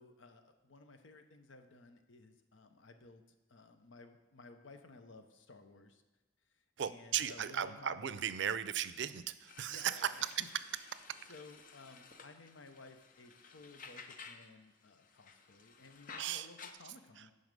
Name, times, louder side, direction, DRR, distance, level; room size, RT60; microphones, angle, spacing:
voice 1, 0.0-3.2 3.5-6.0 6.5-8.3 9.7-10.5 11.3-17.3, left 3 dB, 80° left, 8 dB, 0.8 m, -56 dB
voice 2, 6.8-10.3 11.1-11.2 16.2-16.5 17.2-17.3, right 9 dB, 65° right, 14 dB, 0.4 m, -36 dB
sound 1, 9.5-14.5 14.8-16.7, left 5 dB, 45° left, 0.6 m, -54 dB
9.4 x 5.4 x 5.3 m, 1.2 s
head